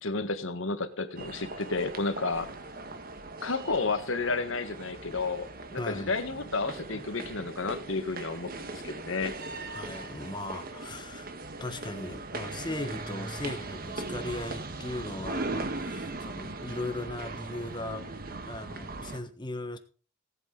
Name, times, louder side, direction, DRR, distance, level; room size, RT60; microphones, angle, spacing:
voice 1, 0.0-2.5 3.4-9.3, left 3 dB, 80° left, 10 dB, 1.5 m, -31 dB
sound 1, 1.2-19.2, right 2 dB, 45° right, 1.4 m, -39 dB
voice 2, 5.8-6.1 9.7-11.3 11.6-18.1 18.4-19.8, left 2 dB, 20° left, 9 dB, 1.3 m, -38 dB
18.0 x 8.3 x 3.9 m, 0.36 s
head